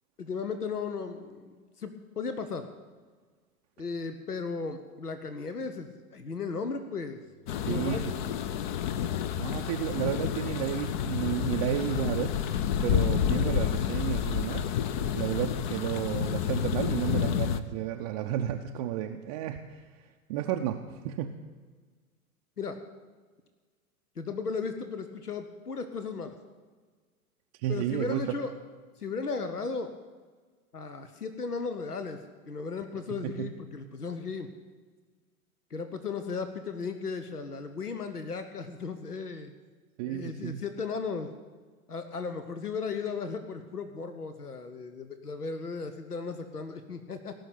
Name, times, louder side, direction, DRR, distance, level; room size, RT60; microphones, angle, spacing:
voice 1, 0.2-2.7 3.8-7.2 7.6-8.1 9.5-9.7 22.6-22.8 24.2-26.4 27.7-28.6 29.0-29.9 30.7-32.2 32.5-34.5 35.7-39.5 40.1-41.3 41.9-47.3, left 4 dB, 85° left, 8 dB, 1.0 m, -36 dB
sound 1, 7.5-17.6, left 9 dB, 35° left, 0.6 m, -29 dB
voice 2, 7.7-8.1 9.4-12.3 12.8-14.7 15.1-19.8 20.3-21.4 27.6-28.3 33.1-33.5 40.0-40.6, right 12 dB, 25° right, 4 dB, 0.5 m, -32 dB
17.0 x 6.3 x 8.5 m, 1.5 s
figure-of-eight pair, 105°, 45 cm